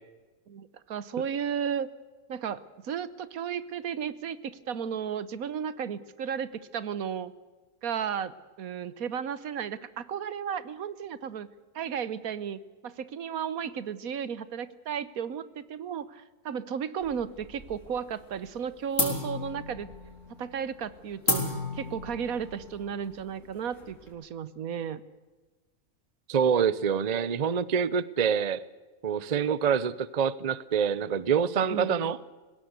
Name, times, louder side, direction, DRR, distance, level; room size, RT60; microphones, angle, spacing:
voice 1, 0.5-1.9 2.3-7.3 7.8-11.5 11.7-19.9 20.3-25.0 31.7-32.2, right 7 dB, 70° right, 16 dB, 1.4 m, -34 dB
sound 1, 17.0-17.9 18.2-18.6 19.0-24.1, left 2 dB, 55° left, 4.4 m, -33 dB
voice 2, 26.3-28.6 29.0-32.2, right 7 dB, 40° right, 19 dB, 0.6 m, -26 dB
20.5 x 17.0 x 8.2 m, 1.3 s
omnidirectional pair, 1.5 m